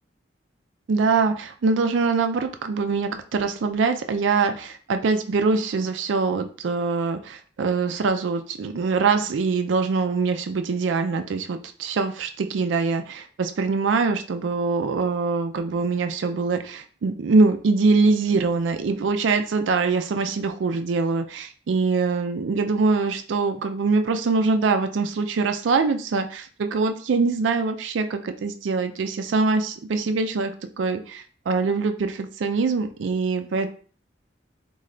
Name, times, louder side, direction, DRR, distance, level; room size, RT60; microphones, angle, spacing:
voice 1, 0.9-33.7, right 4 dB, 90° right, 7 dB, 0.4 m, -23 dB
3.2 x 2.3 x 3.7 m, 0.41 s
head